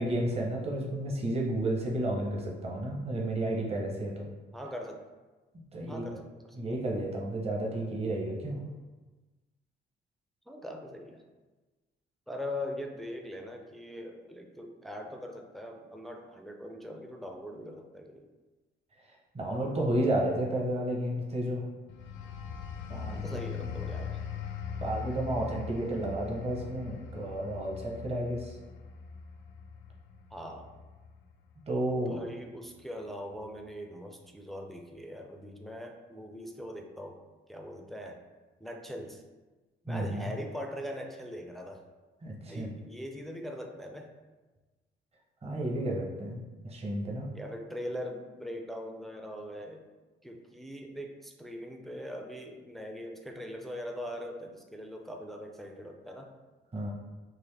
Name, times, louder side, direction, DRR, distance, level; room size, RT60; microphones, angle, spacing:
voice 1, 0.0-4.3 5.5-6.0 6.5-8.6 19.3-21.6 22.9-23.3 24.8-28.6 31.7-32.3 39.9-40.3 42.2-42.7 45.4-47.3 56.7-56.9, right 1 dB, 30° right, -2 dB, 0.8 m, -32 dB
voice 2, 4.5-5.1 5.9-6.6 10.5-11.2 12.3-18.3 23.0-24.2 30.3-30.7 32.1-37.2 37.5-38.2 38.6-39.2 39.8-41.9 42.4-44.1 47.3-49.9 50.2-56.3, equal, ahead, 3 dB, 0.4 m, -41 dB
sound 1, 21.9-32.3 32.7-32.9, left 6 dB, 70° left, 0.5 m, -41 dB
3.8 x 2.5 x 3.2 m, 1.2 s
cardioid pair, 90°, 20 cm